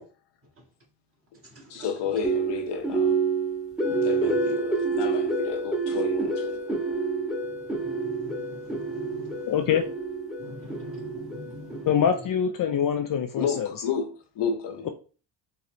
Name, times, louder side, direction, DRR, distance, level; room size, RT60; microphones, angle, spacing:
voice 1, 1.7-3.2 4.0-6.8 13.4-14.9, left 6 dB, 65° left, 0.9 m, -31 dB
sound 1, 2.2-12.3, right 3 dB, ahead, 1.1 m, -28 dB
voice 2, 7.7-9.4 10.4-11.9, left 1 dB, 30° right, 1.5 m, -43 dB
voice 3, 9.5-9.8 11.9-13.7, left 8 dB, 50° left, 0.5 m, -24 dB
3.9 x 2.8 x 3.1 m
cardioid pair, 100°, 43 cm